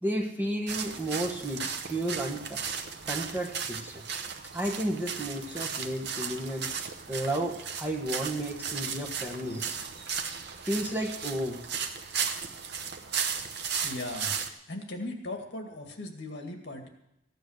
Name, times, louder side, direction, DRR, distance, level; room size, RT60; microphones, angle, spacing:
voice 1, 0.0-2.6 3.1-4.0 4.5-6.7 7.1-9.8 10.6-11.6, right 1 dB, 10° right, 0 dB, 1.5 m, -32 dB
sound 1, 0.7-14.5, right 6 dB, 55° right, 0.9 m, -35 dB
voice 2, 13.8-14.4 14.7-16.9, left 2 dB, 55° left, 4 dB, 1.9 m, -38 dB
14.5 x 9.2 x 6.5 m, 0.82 s
head